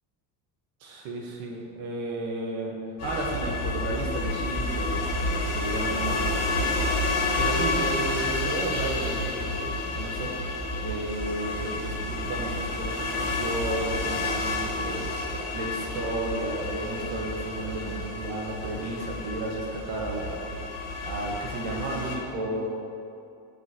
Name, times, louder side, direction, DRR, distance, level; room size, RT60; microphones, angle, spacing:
voice 1, 0.8-5.1 5.5-6.8 7.4-10.5 10.8-15.1 15.5-20.7 21.0-22.8, right 2 dB, 90° right, -1 dB, 1.5 m, -33 dB
sound 1, 3.0-22.1, left 2 dB, 35° left, 1.2 m, -30 dB
9.3 x 5.7 x 3.0 m, 2.5 s
cardioid pair, 140°, 42 cm